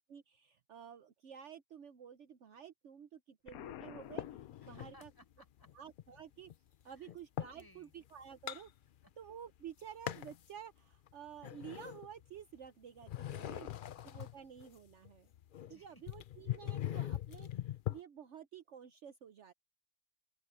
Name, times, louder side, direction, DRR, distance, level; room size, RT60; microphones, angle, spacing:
voice 1, 0.1-5.1 5.7-6.5 6.8-8.7 9.2-13.7 14.0-15.3 15.7-19.5, right 8 dB, 60° right, 1.1 m, -52 dB
Explosion, 3.5-5.3, left 13 dB, 90° left, 1.1 m, -50 dB
sound 1, 4.2-5.1 5.6-7.6 8.1-9.3 9.6-10.5 10.9-12.7 13.0-18.0, left 12 dB, 60° left, 0.5 m, -42 dB
voice 2, 4.7-5.7 6.9-7.1 7.4-7.9 9.0-9.1 13.4-14.0 15.6-16.0, equal, 15° left, 7.6 m, -63 dB
open air
omnidirectional pair, 1.5 m